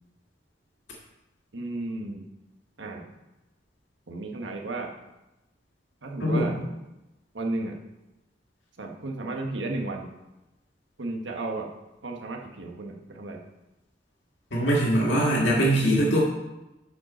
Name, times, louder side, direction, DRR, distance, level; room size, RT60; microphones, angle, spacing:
voice 1, 1.5-2.2 2.8-3.1 4.1-5.0 6.0-6.5 7.3-7.8 8.8-10.1 11.0-11.7 12.0-13.4, right 2 dB, 80° right, 2 dB, 1.4 m, -33 dB
voice 2, 6.2-6.6 14.5-16.2, right 1 dB, 75° left, -4 dB, 2.0 m, -22 dB
11.5 x 5.3 x 4.3 m, 0.99 s
head